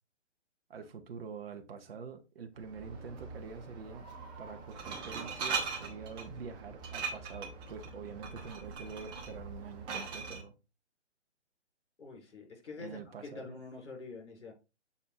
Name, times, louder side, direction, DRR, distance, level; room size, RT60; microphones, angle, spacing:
voice 1, 0.7-4.1 4.4-10.5 12.8-13.5, right 6 dB, 55° right, 1.1 m, -46 dB
Glass, 2.6-10.4, right 5 dB, 15° right, 1.0 m, -41 dB
voice 2, 12.0-14.5, left 4 dB, 70° left, 3.8 m, -46 dB
7.0 x 4.2 x 3.4 m
figure-of-eight pair, 140°, 36 cm